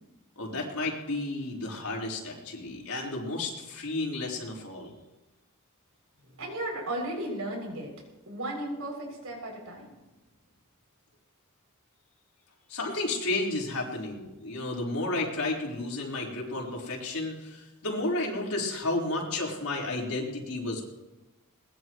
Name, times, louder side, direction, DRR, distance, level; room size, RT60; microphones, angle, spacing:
voice 1, 0.4-4.9 12.7-20.8, left 2 dB, 85° left, -3 dB, 4.6 m, -32 dB
voice 2, 6.4-7.9 8.3-9.9, right 1 dB, 80° right, -1 dB, 7.4 m, -35 dB
22.0 x 20.5 x 3.2 m, 1.1 s
head